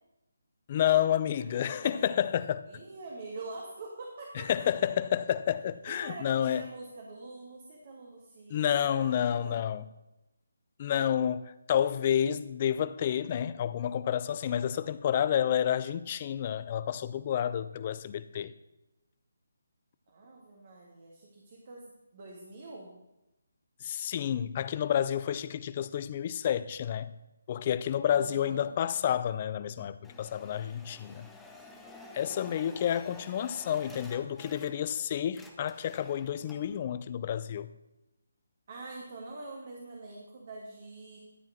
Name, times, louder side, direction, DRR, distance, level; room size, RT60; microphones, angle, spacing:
voice 1, 0.7-2.7 4.3-6.6 8.5-9.8 10.8-18.5 23.8-27.1 27.5-31.3 32.1-37.7, left 9 dB, 35° left, 0.4 m, -30 dB
voice 2, 1.4-2.2 2.7-4.5 5.8-9.6 20.1-22.9 28.1-28.7 38.7-41.2, right 2 dB, 45° right, 1.9 m, -45 dB
sound 1, 30.0-35.0 35.3-36.8, left 2 dB, 5° left, 0.8 m, -51 dB
12.5 x 4.6 x 6.5 m
figure-of-eight pair, 155°, 0 cm